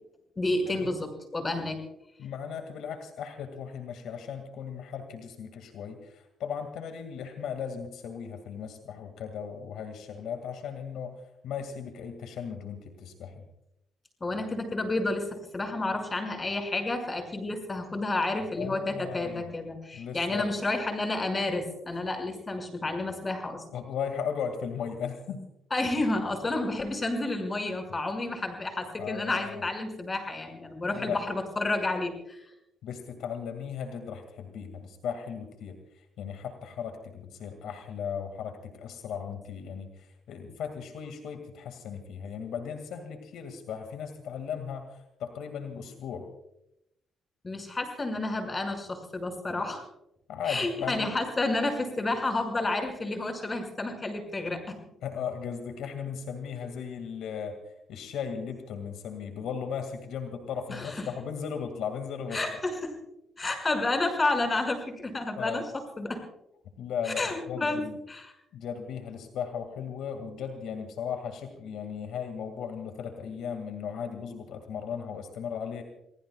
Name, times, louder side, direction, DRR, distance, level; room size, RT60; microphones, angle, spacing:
voice 1, 0.4-1.8 14.2-15.3 15.5-23.6 25.7-32.5 47.4-49.8 50.5-54.7 60.7-60.9 62.3-62.9 63.4-65.6 66.0-66.2 67.1-67.8 68.1-68.3, left 2 dB, 25° left, 4 dB, 6.0 m, -30 dB
voice 2, 2.2-13.4 18.4-19.5 19.9-20.5 23.7-25.4 29.0-29.6 30.9-31.2 32.8-46.3 50.3-51.1 55.0-57.6 57.9-62.4 65.4-65.7 66.8-68.0 68.5-75.8, left 7 dB, 80° left, 6 dB, 2.1 m, -37 dB
29.5 x 19.5 x 2.4 m, 0.81 s
cardioid pair, 90°, 0 cm